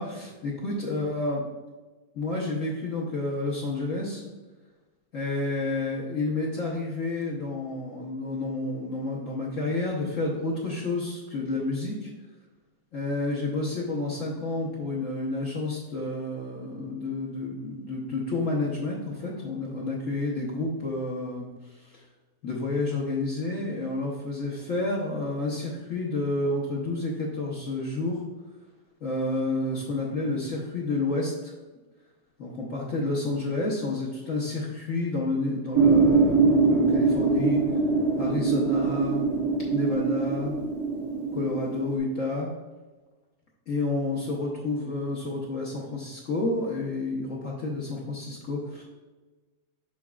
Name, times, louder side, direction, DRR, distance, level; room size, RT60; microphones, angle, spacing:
voice 1, 0.0-1.5 2.1-4.2 5.1-12.1 12.9-21.5 21.7-21.9 22.4-28.2 29.0-31.5 32.4-37.6 38.2-39.3 39.7-40.6 41.3-42.5 43.7-48.8, left 2 dB, 55° left, -4 dB, 1.3 m, -30 dB
sound 1, 35.7-42.0, right 4 dB, 85° right, 1.9 m, -23 dB
7.2 x 6.0 x 2.3 m, 1.2 s
omnidirectional pair, 1.8 m